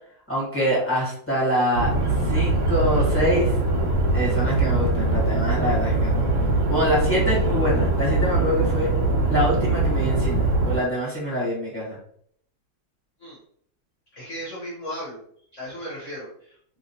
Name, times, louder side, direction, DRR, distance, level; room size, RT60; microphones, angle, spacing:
voice 1, 0.3-3.6 4.1-6.4 6.7-8.9 9.3-12.0, equal, 10° left, -7 dB, 0.8 m, -25 dB
sound 1, 1.7-10.8, right 2 dB, 65° right, 1.1 m, -22 dB
voice 2, 14.1-15.2 15.5-16.6, equal, 55° left, -6 dB, 0.8 m, -36 dB
3.0 x 2.8 x 2.7 m, 0.64 s
omnidirectional pair, 2.3 m